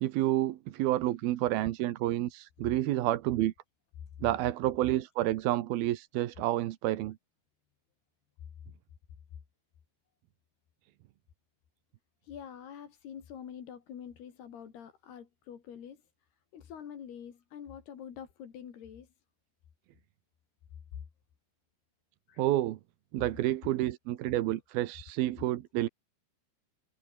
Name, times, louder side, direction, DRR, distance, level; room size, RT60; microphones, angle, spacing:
voice 1, 0.0-3.5 4.2-7.2 22.4-22.8 23.1-25.9, right 15 dB, 75° right, 2.9 m, -29 dB
voice 2, 12.2-16.1 16.5-19.1 22.3-22.5, left 8 dB, 80° left, 5.0 m, -46 dB
omnidirectional pair, 4.5 m